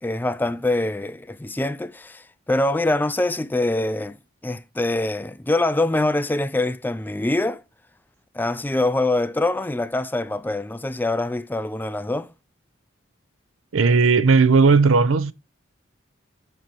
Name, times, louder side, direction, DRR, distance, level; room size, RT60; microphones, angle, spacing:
voice 1, 0.0-4.2 4.4-7.6 8.3-12.3, left 2 dB, 10° left, 0.3 m, -24 dB
voice 2, 13.7-15.3, right 4 dB, 85° right, 0.6 m, -16 dB
6.2 x 4.5 x 5.2 m
head